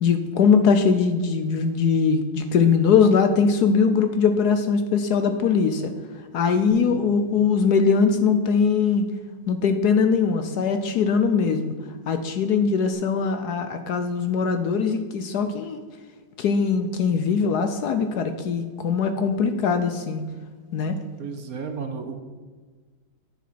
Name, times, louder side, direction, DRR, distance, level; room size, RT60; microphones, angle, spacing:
voice 1, 0.0-5.9 6.3-9.0 9.5-11.7 12.1-15.8 16.4-20.2 20.7-21.0, left 5 dB, 65° left, 8 dB, 1.1 m, -21 dB
Bass guitar, 6.7-11.4 11.7-12.9, right 2 dB, 45° left, 3.1 m, -43 dB
voice 2, 21.2-22.2, right 5 dB, 55° right, 6 dB, 1.1 m, -33 dB
10.0 x 7.3 x 5.8 m, 1.4 s
omnidirectional pair, 2.1 m